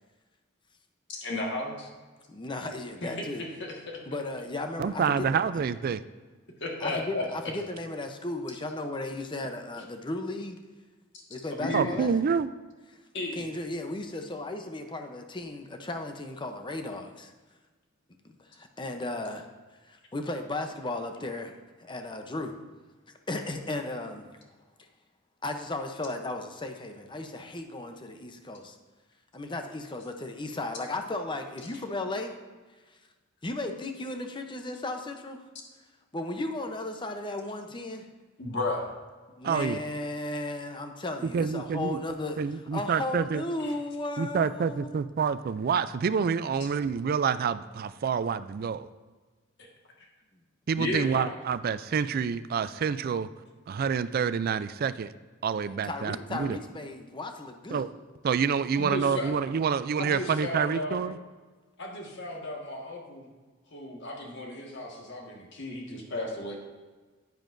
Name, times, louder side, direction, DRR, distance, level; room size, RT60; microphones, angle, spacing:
voice 1, 1.1-1.9 3.0-4.0 5.5-5.6 6.6-7.2 11.1-11.2 11.6-11.9 13.1-13.5 38.4-38.9 43.6-43.7 50.0-50.1 50.7-51.3 58.7-59.3 60.0-61.0 61.8-63.3 63.7-66.6, left 2 dB, 60° left, 0 dB, 1.7 m, -34 dB
voice 2, 2.3-3.5 4.1-5.3 6.8-10.6 11.3-12.1 13.4-17.3 18.2-19.5 19.8-22.5 23.3-24.3 24.8-24.9 25.4-28.8 29.3-32.3 32.9-33.0 33.4-35.4 36.1-38.0 39.4-42.4 42.7-45.0 55.6-57.9, left 2 dB, 25° left, 5 dB, 0.7 m, -35 dB
voice 3, 4.8-6.0 11.7-12.5 39.4-39.8 41.2-42.0 42.4-43.4 44.2-48.9 50.7-53.3 53.7-55.1 55.4-56.6 57.7-57.9 58.2-61.2, right 6 dB, 50° right, 14 dB, 0.3 m, -27 dB
9.7 x 9.3 x 2.6 m, 1.3 s
head